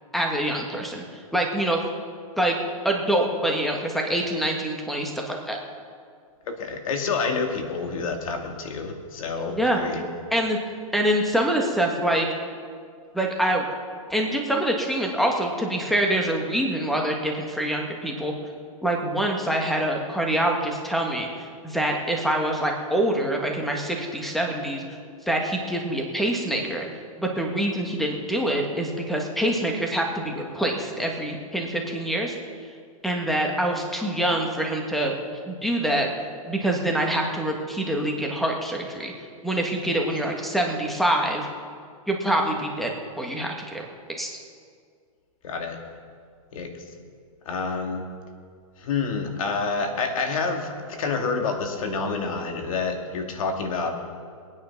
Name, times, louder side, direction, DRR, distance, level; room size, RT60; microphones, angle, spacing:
voice 1, 0.1-1.8 2.4-2.6 2.8-5.6 9.5-9.8 10.3-10.6 10.9-12.3 13.1-13.7 14.1-18.3 18.8-24.8 25.3-26.8 27.2-32.3 33.0-35.2 35.5-36.1 36.5-39.1 39.4-41.5 42.1-43.8 44.1-44.3, right 1 dB, ahead, 1 dB, 1.6 m, -25 dB
voice 2, 6.5-10.1 39.9-40.0 45.4-45.8 46.5-46.7 47.5-48.0 48.8-53.9, left 4 dB, 65° left, 4 dB, 2.4 m, -28 dB
21.5 x 9.7 x 5.9 m, 2.1 s
hypercardioid pair, 145°, 18 cm